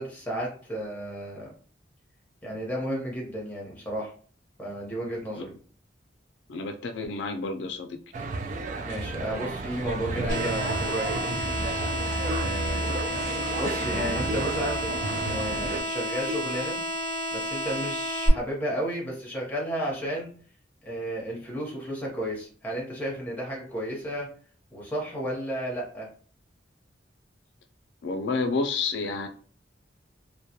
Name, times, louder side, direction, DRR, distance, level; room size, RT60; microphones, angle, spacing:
voice 1, 0.0-1.5 2.4-4.1 4.6-5.5 8.8-11.4 12.2-12.9 13.6-14.8 15.3-16.8 17.3-20.3 20.8-24.3 24.7-26.1, equal, 10° left, -3 dB, 0.9 m, -33 dB
voice 2, 6.5-8.0 12.7-13.0 28.0-29.3, left 3 dB, 80° left, 6 dB, 0.4 m, -30 dB
sound 1, 8.1-15.8, right 3 dB, 45° right, 0.3 m, -32 dB
sound 2, 10.3-18.3, equal, 85° right, 0.9 m, -31 dB
2.2 x 2.1 x 2.7 m, 0.44 s
head